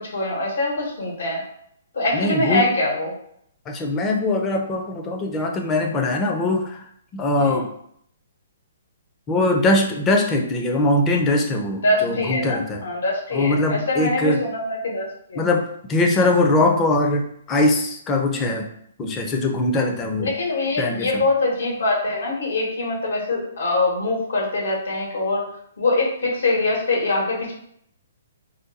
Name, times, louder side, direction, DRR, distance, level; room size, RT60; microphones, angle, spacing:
voice 1, 0.0-1.4 1.9-3.1 7.4-7.6 11.8-15.5 20.2-25.5 25.8-27.5, left 2 dB, 80° left, -2 dB, 1.2 m, -23 dB
voice 2, 2.1-2.7 3.7-6.8 7.1-7.7 9.3-12.8 13.3-14.4 15.4-18.7 19.0-20.3 20.8-21.1, left 2 dB, 15° left, 2 dB, 0.4 m, -21 dB
2.5 x 2.2 x 3.9 m, 0.69 s
hypercardioid pair, 170°, 0 cm